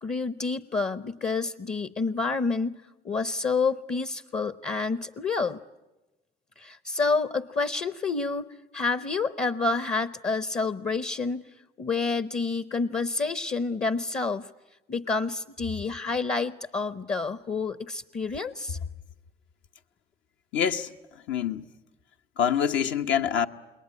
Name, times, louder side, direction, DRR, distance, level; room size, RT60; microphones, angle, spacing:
voice 1, 0.0-2.8 3.0-5.6 6.6-8.5 8.7-11.4 11.8-14.5 14.9-18.8, left 4 dB, 35° left, 0.9 m, -28 dB
voice 2, 20.5-21.6 22.4-23.5, left 8 dB, 70° left, 1.2 m, -26 dB
28.0 x 21.5 x 9.8 m
supercardioid pair, 70°, 21 cm